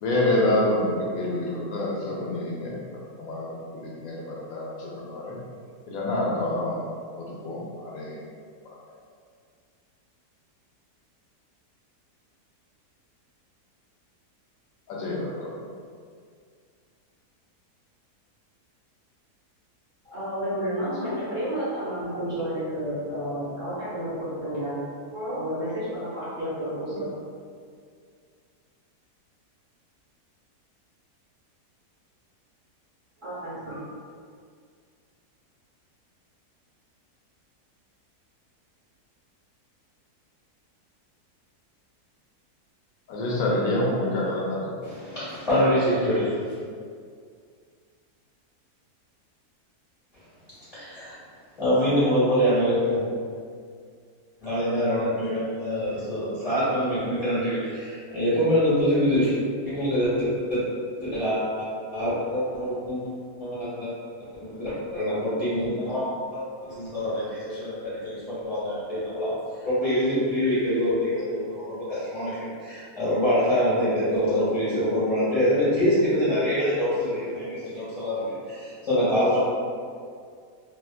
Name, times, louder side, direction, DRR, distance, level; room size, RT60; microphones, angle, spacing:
voice 1, 0.0-2.7 3.2-5.4 5.9-6.8 7.2-8.2 8.6-8.8 14.9-15.5 43.1-44.7, left 1 dB, 70° left, -4 dB, 1.0 m, -27 dB
voice 2, 20.0-24.8 25.1-27.1 33.2-33.8, equal, 45° right, -15 dB, 1.6 m, -31 dB
voice 3, 44.8-46.5 50.7-51.1 51.6-53.1 54.4-59.3 59.6-60.6 61.0-63.1 63.4-63.9 64.4-66.1 66.3-69.3 69.6-79.4, equal, 25° left, -14 dB, 1.2 m, -25 dB
2.9 x 2.3 x 2.4 m, 2.1 s
omnidirectional pair, 1.7 m